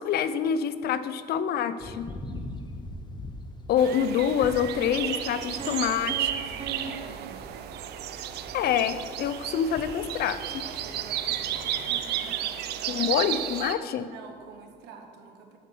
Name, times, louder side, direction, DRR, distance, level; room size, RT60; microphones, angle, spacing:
voice 1, 0.0-2.1 3.7-6.3 8.5-10.6 12.9-14.1, left 8 dB, 65° left, 12 dB, 0.6 m, -26 dB
sound 1, 1.8-12.0, left 2 dB, 25° left, 1.0 m, -44 dB
voice 2, 2.3-2.6 3.7-3.8 5.4-6.0 6.4-7.4 10.6-13.1 14.0-15.6, right 4 dB, 90° right, 4 dB, 1.4 m, -46 dB
sound 2, 3.8-13.7, right 11 dB, 75° right, 0.7 m, -33 dB
Piano, 5.6-8.4, right 9 dB, 40° right, 0.7 m, -42 dB
12.5 x 5.5 x 6.2 m, 2.2 s
cardioid pair, 110°, 17 cm